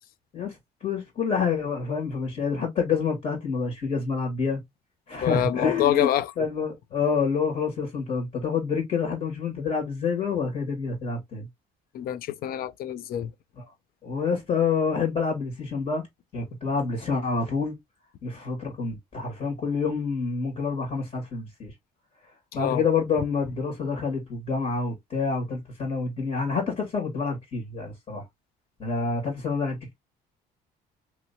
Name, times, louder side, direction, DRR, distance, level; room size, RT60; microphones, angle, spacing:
voice 1, 0.3-4.6 5.1-6.1 6.4-11.5 13.6-13.7 14.0-16.0 16.3-17.8 18.2-21.7 22.5-28.2 28.8-29.9, left 5 dB, 45° left, 1.9 m, -27 dB
voice 2, 5.2-6.3 11.9-13.3 22.5-22.8, left 11 dB, 60° left, 0.5 m, -26 dB
2.9 x 2.9 x 2.7 m
cardioid pair, 110°, 17 cm